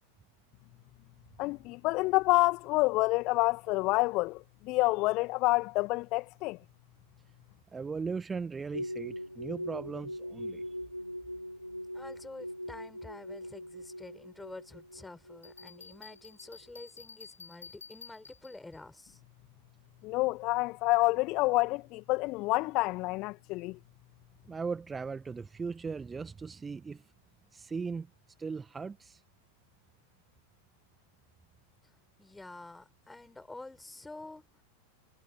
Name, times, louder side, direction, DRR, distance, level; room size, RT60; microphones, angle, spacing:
voice 1, 1.4-6.6 20.0-23.8, left 22 dB, 40° left, 2.0 m, -28 dB
voice 2, 7.7-10.7 24.5-27.0 27.5-28.1 28.4-29.2, right 5 dB, 15° right, 1.6 m, -38 dB
sound 1, 8.7-16.2 16.5-16.6, equal, 90° left, 1.6 m, -41 dB
voice 3, 11.9-19.2 31.8-31.9 32.2-34.6, left 2 dB, 5° left, 6.6 m, -48 dB
Bell, 15.4-18.8, left 5 dB, 75° left, 6.8 m, -51 dB
figure-of-eight pair, 90°, 0 cm